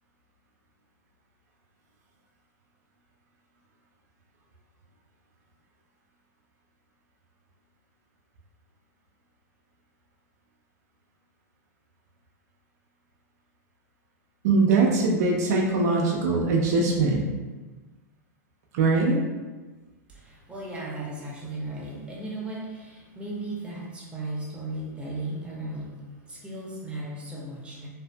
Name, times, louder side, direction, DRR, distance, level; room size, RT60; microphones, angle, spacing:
voice 1, 14.4-17.3 18.7-19.2, right 3 dB, 65° right, -1 dB, 0.5 m, -22 dB
voice 2, 20.1-27.9, right 2 dB, 10° right, -5 dB, 0.7 m, -36 dB
2.5 x 2.4 x 2.2 m, 1.2 s
hypercardioid pair, 110°, 9 cm